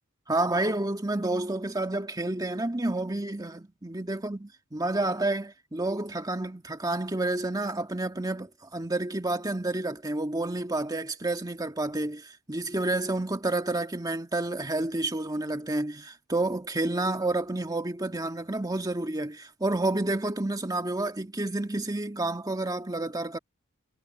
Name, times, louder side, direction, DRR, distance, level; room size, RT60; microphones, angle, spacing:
voice 1, 0.3-23.4, right 2 dB, 15° right, 1.6 m, -30 dB
head